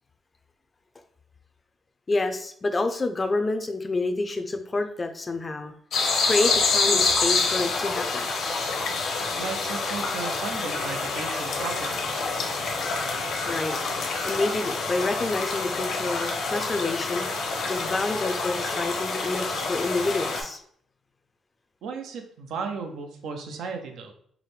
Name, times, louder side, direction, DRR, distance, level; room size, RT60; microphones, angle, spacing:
voice 1, 2.1-5.7 6.2-8.3 13.5-13.8 14.2-17.3 17.7-20.6, left 2 dB, 30° left, 7 dB, 0.4 m, -28 dB
sound 1, 5.9-20.4, left 4 dB, 70° left, 0.8 m, -27 dB
voice 2, 9.4-12.3 21.8-24.1, right 5 dB, 80° right, 4 dB, 0.6 m, -35 dB
4.7 x 2.1 x 3.1 m, 0.62 s
cardioid pair, 90°, 0 cm